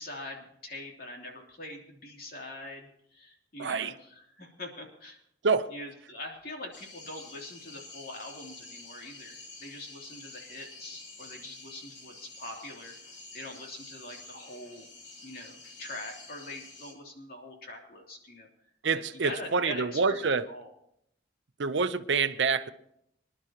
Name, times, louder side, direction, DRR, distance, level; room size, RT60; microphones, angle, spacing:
voice 1, 0.0-5.2 5.7-13.0 13.3-14.9 15.2-18.5 18.9-20.7, left 1 dB, 50° left, 3.0 m, -43 dB
voice 2, 3.6-3.9 5.4-5.7 18.8-20.4 21.6-22.7, right 4 dB, 80° right, 0.7 m, -27 dB
sound 1, 6.7-16.9, left 3 dB, 80° left, 3.4 m, -49 dB
25.0 x 11.0 x 3.0 m
head